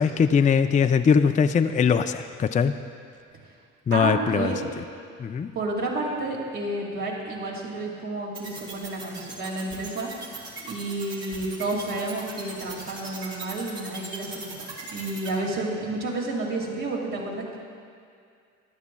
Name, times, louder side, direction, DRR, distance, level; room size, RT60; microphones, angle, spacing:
voice 1, 0.0-2.7 3.9-4.5 5.2-5.5, left 6 dB, 20° left, 9 dB, 0.4 m, -21 dB
voice 2, 3.9-4.6 5.5-10.1 10.6-14.5 14.9-17.6, right 2 dB, 65° right, -3 dB, 2.4 m, -30 dB
sound 1, 8.3-15.3, right 3 dB, 85° right, 1.8 m, -38 dB
14.5 x 10.5 x 2.3 m, 2.3 s
hypercardioid pair, 50°, 37 cm